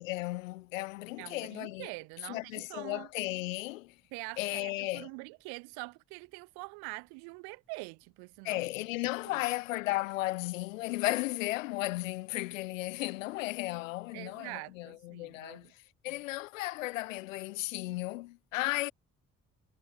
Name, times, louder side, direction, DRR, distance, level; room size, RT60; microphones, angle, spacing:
voice 1, 0.0-1.9 2.3-3.9 4.4-5.1 8.4-15.7 16.0-18.9, left 19 dB, 75° left, 2.0 m, -35 dB
voice 2, 1.2-3.1 4.1-8.6 9.3-9.5 14.1-15.7, right 35 dB, 70° right, 3.9 m, -45 dB
figure-of-eight pair, 40°, 39 cm